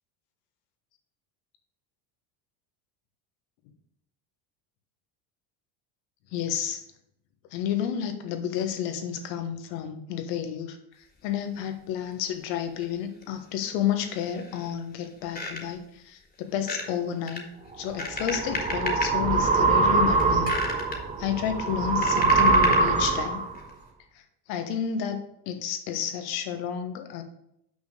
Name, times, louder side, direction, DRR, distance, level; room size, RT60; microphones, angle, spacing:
voice 1, 6.3-6.8 7.5-17.5 17.8-20.6 21.2-23.4 24.1-24.2 24.5-27.2, left 9 dB, 80° left, 7 dB, 1.4 m, -31 dB
sound 1, 12.8-12.9 13.2-13.3 14.0-14.7 15.0-15.8 16.5-16.9 17.3-19.1 19.6-19.9 20.2-21.0 21.6-23.0 23.5-23.7, left 3 dB, 20° left, 1.8 m, -33 dB
sound 2, 17.8-23.6, right 3 dB, 15° right, 0.7 m, -23 dB
6.1 x 5.4 x 6.7 m, 0.76 s
supercardioid pair, 120°, 49 cm